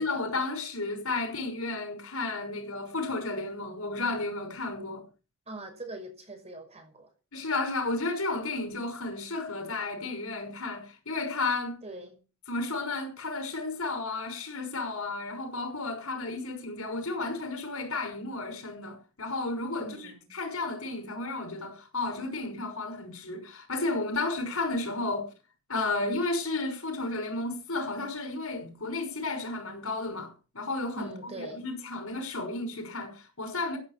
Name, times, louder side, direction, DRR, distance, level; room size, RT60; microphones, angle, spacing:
voice 1, 0.0-5.0 7.3-11.8 12.5-25.3 25.7-33.8, left 2 dB, 90° left, 5.8 m, -33 dB
voice 2, 5.5-7.1 11.8-12.2 19.8-20.4 30.9-31.6, right 2 dB, 30° right, 5.9 m, -43 dB
15.5 x 7.9 x 7.5 m
head